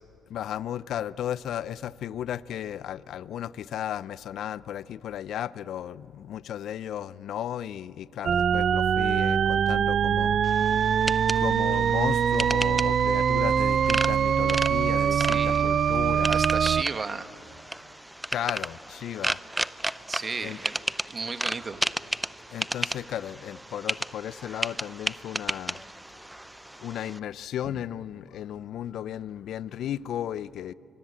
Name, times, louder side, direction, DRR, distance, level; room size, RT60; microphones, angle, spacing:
voice 1, 0.3-11.0 11.3-16.3 18.3-19.4 20.4-20.6 22.5-25.8 26.8-30.7, left 10 dB, 70° left, 0.5 m, -35 dB
sound 1, 8.2-16.8, right 8 dB, 55° right, 0.5 m, -23 dB
sound 2, 10.4-27.2, right 1 dB, 10° right, 0.7 m, -34 dB
voice 2, 15.1-15.7 16.2-17.3 20.1-20.8 21.1-21.8, right 4 dB, 35° right, 1.7 m, -33 dB
25.0 x 23.0 x 8.8 m
supercardioid pair, 65°, 0 cm